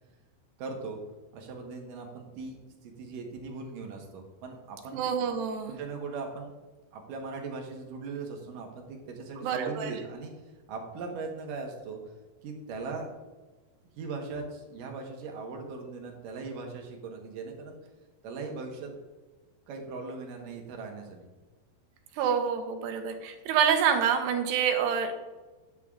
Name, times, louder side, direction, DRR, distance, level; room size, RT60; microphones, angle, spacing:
voice 1, 0.6-1.0 1.3-2.6 2.8-5.0 5.7-6.5 6.9-10.3 10.7-12.0 12.4-13.1 13.9-17.8 18.2-18.9 19.7-21.3, right 4 dB, 65° right, 2 dB, 2.6 m, -39 dB
voice 2, 4.9-5.8 9.4-9.9 22.2-25.2, right 7 dB, 80° right, 6 dB, 3.0 m, -27 dB
10.0 x 8.3 x 3.7 m, 1.2 s
omnidirectional pair, 4.9 m